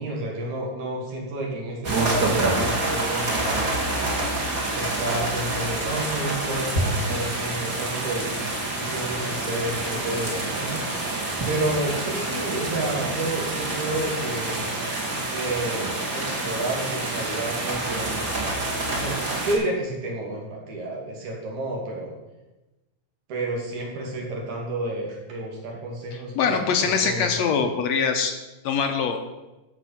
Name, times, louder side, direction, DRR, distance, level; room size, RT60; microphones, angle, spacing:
voice 1, 0.0-3.8 4.7-11.0 11.5-14.7 15.3-18.3 18.9-22.1 23.3-27.5, right 2 dB, 70° right, -2 dB, 4.0 m, -30 dB
sound 1, 1.8-19.5, right 2 dB, 30° right, 2.3 m, -27 dB
voice 2, 26.4-28.3 28.6-29.2, left 6 dB, 70° left, 5 dB, 2.0 m, -23 dB
12.0 x 7.2 x 5.8 m, 1.0 s
omnidirectional pair, 3.5 m